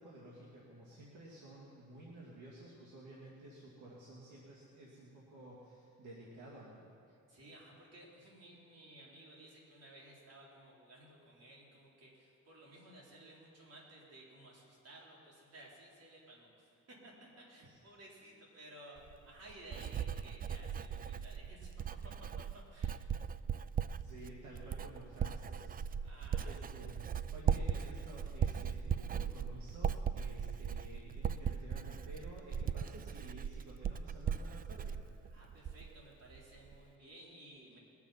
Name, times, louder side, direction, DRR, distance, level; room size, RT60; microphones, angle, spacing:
voice 1, 0.0-6.9 17.6-17.8 24.0-25.8 26.4-27.0 27.3-35.0, right 1 dB, 75° right, -5 dB, 2.4 m, -53 dB
voice 2, 7.1-16.7 17.0-21.7 22.0-22.1 22.5-23.0 26.0-26.6 35.3-37.8, right 1 dB, 55° right, -4 dB, 4.1 m, -56 dB
Writing, 19.0-36.0 36.3-36.8, right 7 dB, 30° right, 0.4 m, -38 dB
21.5 x 7.1 x 5.8 m, 2.7 s
cardioid pair, 90°, 30 cm